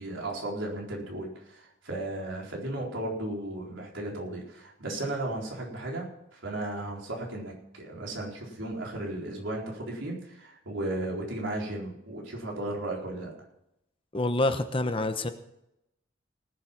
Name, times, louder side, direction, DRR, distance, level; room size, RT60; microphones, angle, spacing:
voice 1, 0.0-6.1 6.3-13.3, right 1 dB, 80° right, -2 dB, 4.2 m, -35 dB
voice 2, 14.1-15.3, left 2 dB, 30° left, 9 dB, 0.9 m, -27 dB
19.0 x 7.5 x 5.9 m, 0.82 s
head